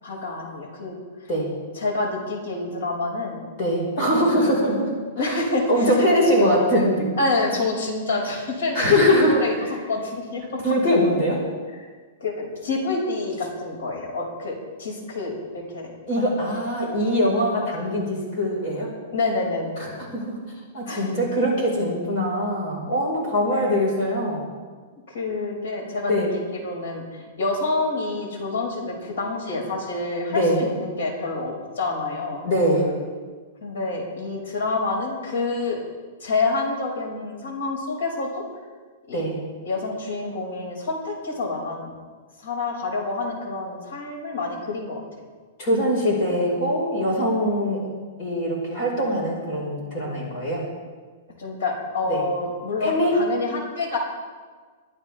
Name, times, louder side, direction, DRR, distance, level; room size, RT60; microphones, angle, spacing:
voice 1, 0.0-0.9 1.2-1.3 1.7-3.4 4.0-4.5 5.2-6.0 6.4-6.6 7.2-9.5 9.9-10.6 11.8-11.9 12.2-15.4 15.7-16.3 19.1-19.8 20.8-21.1 23.4-23.8 25.1-32.5 33.6-35.8 36.2-38.4 39.1-39.3 39.6-41.9 42.4-45.0 51.4-54.0, left 3 dB, 80° left, -1 dB, 6.1 m, -28 dB
voice 2, 3.6-4.9 5.2-5.3 5.7-7.0 8.7-9.4 10.6-11.4 16.1-18.9 19.8-20.4 20.7-24.4 26.1-26.3 30.3-30.6 32.4-32.9 39.1-39.4 45.6-47.9 48.2-50.6 52.1-52.2 52.8-53.1, equal, 30° left, -3 dB, 5.2 m, -22 dB
23.5 x 14.5 x 3.6 m, 1.5 s
supercardioid pair, 175°, 0 cm